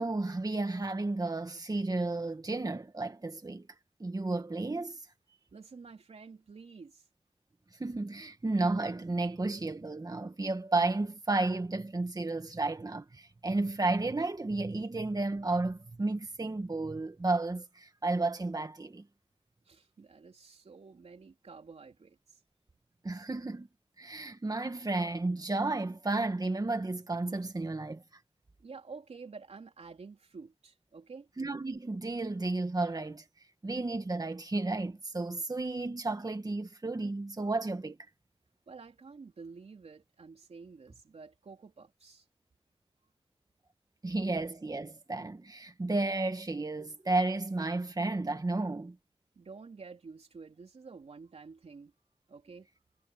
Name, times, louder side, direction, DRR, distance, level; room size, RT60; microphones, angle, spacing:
voice 1, 0.0-3.7 4.0-5.0 7.8-19.0 23.0-23.7 24.0-28.0 31.4-33.3 33.6-38.0 44.0-49.0, right 2 dB, 40° right, 1.9 m, -32 dB
voice 2, 5.5-7.0 19.6-22.4 28.6-31.3 38.7-42.2 49.3-51.9 52.3-52.7, right 4 dB, 85° right, 3.6 m, -50 dB
wide cardioid pair, 65°, 10 cm